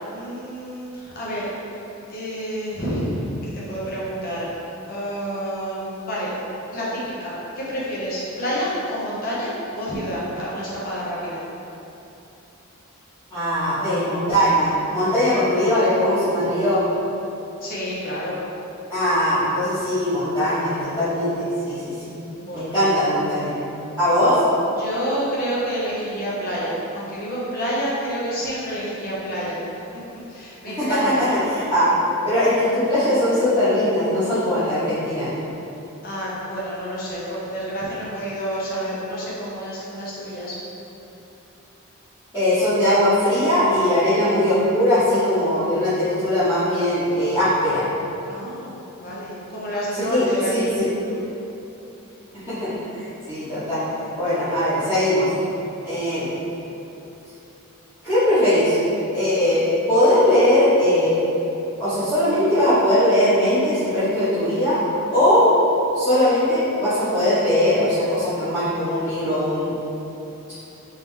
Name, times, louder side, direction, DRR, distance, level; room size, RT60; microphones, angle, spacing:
voice 1, 0.1-1.5 2.1-4.5 4.9-6.3 6.7-11.4 17.6-18.4 22.3-22.7 24.8-29.6 29.9-30.0 30.3-31.3 36.0-40.5 48.3-51.2, equal, 40° left, -7 dB, 0.8 m, -29 dB
voice 2, 13.3-16.8 18.9-22.1 22.5-23.5 24.0-24.4 30.8-31.9 32.2-35.3 42.3-47.9 49.9-50.9 52.3-53.8 54.2-55.3 55.8-56.3 58.0-58.8 59.1-61.2 61.8-64.8 65.1-65.5 65.9-69.7, left 1 dB, 15° left, -19 dB, 1.2 m, -20 dB
3.7 x 3.0 x 3.4 m, 3.0 s
head